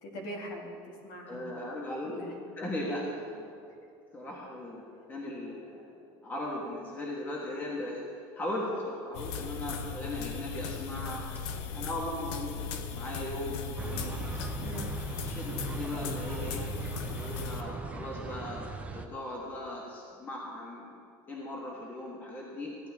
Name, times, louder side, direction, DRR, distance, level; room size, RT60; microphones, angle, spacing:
voice 1, 0.0-1.6 2.1-2.3 14.6-14.9, equal, 50° left, -1 dB, 2.3 m, -42 dB
voice 2, 1.3-2.2 2.6-3.6 4.1-8.0 8.4-11.4 11.7-14.1 15.2-16.6 17.0-21.0 21.3-22.7, left 1 dB, 15° left, -3 dB, 1.5 m, -38 dB
sound 1, 9.1-17.6, left 5 dB, 70° left, 0.8 m, -37 dB
sound 2, 13.8-19.1, right 4 dB, 10° right, 0.4 m, -39 dB
15.5 x 10.5 x 3.6 m, 2.4 s
cardioid pair, 165°, 11 cm